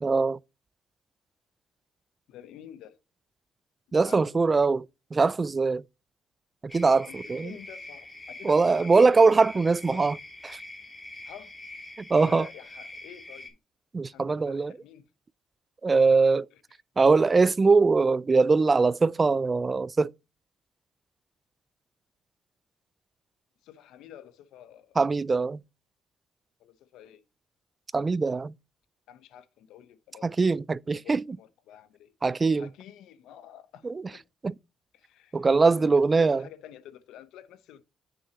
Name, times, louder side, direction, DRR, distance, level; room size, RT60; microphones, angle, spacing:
voice 1, 0.0-0.4 3.9-4.9 5.1-5.8 6.6-7.5 8.4-10.2 12.0-12.5 13.9-14.7 15.8-16.5 17.0-20.1 25.0-25.6 27.9-28.5 30.2-31.2 32.2-32.7 33.8-34.0 34.4-34.5 35.3-36.4, right 4 dB, 30° right, 0.3 m, -22 dB
voice 2, 2.3-3.0 3.9-4.5 7.1-9.0 9.2-9.5 9.7-10.1 11.2-11.5 12.2-13.6 14.1-15.1 16.0-16.1 16.5-16.6 23.6-25.0 26.6-27.2 29.1-30.6 30.9-32.1 32.5-34.2 34.9-37.8, left 10 dB, 90° left, 1.0 m, -49 dB
sound 1, 6.7-13.5, left 2 dB, 15° left, 2.8 m, -44 dB
9.3 x 6.3 x 3.0 m
cardioid pair, 90°, 0 cm